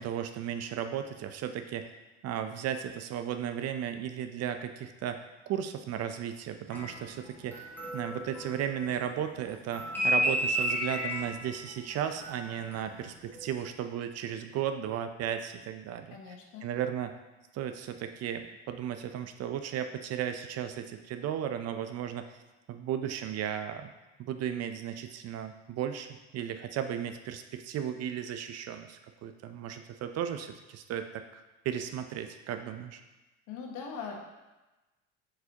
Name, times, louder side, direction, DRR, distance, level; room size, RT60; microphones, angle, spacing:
voice 1, 0.0-1.9 2.2-5.2 5.5-7.6 7.9-16.2 16.6-17.1 17.5-22.2 22.7-23.9 24.2-26.1 26.3-31.2 31.6-33.0, right 9 dB, 50° right, 8 dB, 0.6 m, -35 dB
sound 1, 6.7-9.1 9.4-13.0 13.3-13.6, equal, 5° left, 1.6 m, -32 dB
voice 2, 16.1-16.6 33.5-34.2, left 5 dB, 60° left, 1 dB, 1.3 m, -41 dB
7.5 x 4.8 x 2.9 m, 1.1 s
supercardioid pair, 85°, 33 cm